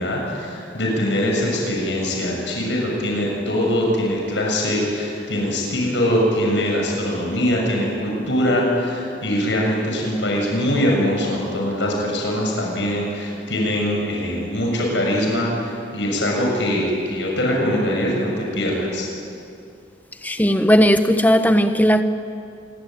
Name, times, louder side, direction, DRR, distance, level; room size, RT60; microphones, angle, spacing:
voice 1, 0.0-19.1, equal, 80° left, -1 dB, 6.8 m, -22 dB
voice 2, 20.2-22.0, equal, 10° left, 8 dB, 1.1 m, -16 dB
27.0 x 22.5 x 9.1 m, 2.5 s
head